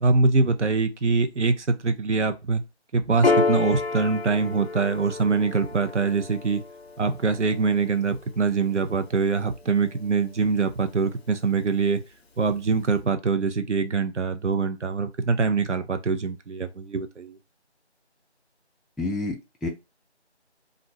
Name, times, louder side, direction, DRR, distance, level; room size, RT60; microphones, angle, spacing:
voice 1, 0.0-2.6 2.9-6.6 7.0-12.0 12.4-17.3, right 4 dB, 90° right, 0.6 m, -24 dB
Piano, 3.2-10.1, left 3 dB, 60° left, 0.5 m, -30 dB
voice 2, 19.0-19.7, left 2 dB, 5° right, 0.3 m, -29 dB
2.5 x 2.1 x 2.8 m
figure-of-eight pair, 170°, 34 cm